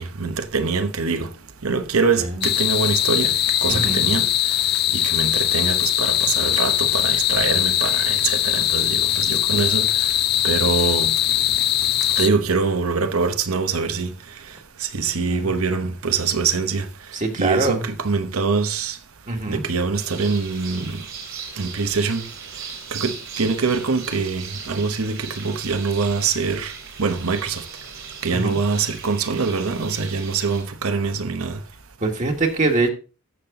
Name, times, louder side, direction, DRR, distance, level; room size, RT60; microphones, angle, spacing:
voice 1, 0.0-1.3 1.6-3.4 3.6-4.3 4.9-10.1 10.4-11.1 12.2-14.1 14.8-16.9 17.3-19.0 19.5-21.1 21.6-22.3 22.9-26.7 27.0-27.6 28.2-31.6, right 4 dB, 85° right, 1.0 m, -24 dB
sound 1, 2.4-12.3, left 12 dB, 50° left, 0.5 m, -21 dB
voice 2, 3.7-4.0 15.3-15.5 17.1-17.8 19.3-19.6 28.3-28.6 32.0-32.9, right 3 dB, 35° right, 1.6 m, -23 dB
sound 2, 19.9-30.6, right 6 dB, 65° right, 3.0 m, -38 dB
14.0 x 5.9 x 3.7 m
head